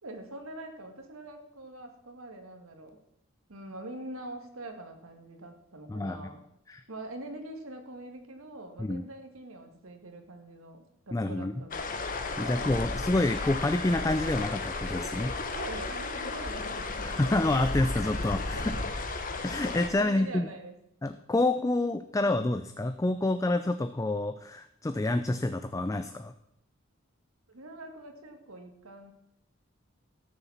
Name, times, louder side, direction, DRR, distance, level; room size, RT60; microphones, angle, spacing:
voice 1, 0.0-3.0 3.5-6.4 6.9-12.0 12.4-12.7 15.5-17.1 18.5-18.7 20.0-20.8 27.5-29.1, right 1 dB, 90° right, 5 dB, 1.8 m, -44 dB
voice 2, 11.1-11.5 12.4-15.3 17.0-18.8 19.4-20.5 21.0-26.3, left 2 dB, 15° left, 9 dB, 0.4 m, -28 dB
sound 1, 11.7-19.9, left 3 dB, 40° left, 1.2 m, -34 dB
13.0 x 6.9 x 7.1 m, 0.78 s
head